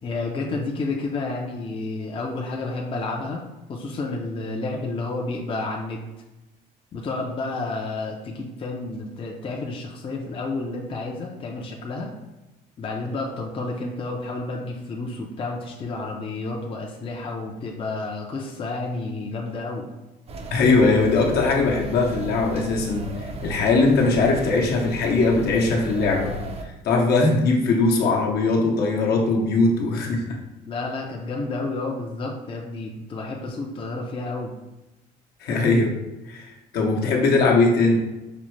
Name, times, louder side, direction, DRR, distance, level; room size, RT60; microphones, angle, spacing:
voice 1, 0.0-6.0 6.9-12.1 12.8-19.9 30.7-34.5, left 3 dB, 30° left, 0 dB, 0.5 m, -30 dB
sound 1, 20.3-26.6, right 2 dB, 35° right, 0.5 m, -35 dB
voice 2, 20.5-23.1 23.4-26.3 26.8-30.4 35.4-35.9 36.3-38.0, left 3 dB, 70° left, -1 dB, 0.8 m, -20 dB
5.0 x 2.1 x 3.1 m, 1.0 s
cardioid pair, 110°, 17 cm